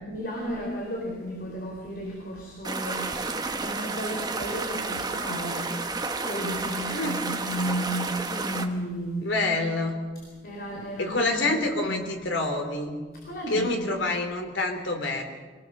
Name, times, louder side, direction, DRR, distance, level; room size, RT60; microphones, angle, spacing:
voice 1, 0.0-5.8 6.2-9.3 10.1-12.0 13.1-14.0, equal, 55° left, -1 dB, 4.4 m, -34 dB
sound 1, 2.6-8.7, right 3 dB, 20° right, 1.3 m, -31 dB
voice 2, 9.2-10.0 11.0-13.0 13.5-15.2, left 2 dB, 85° left, 4 dB, 3.5 m, -27 dB
25.0 x 19.0 x 6.8 m, 1.4 s
head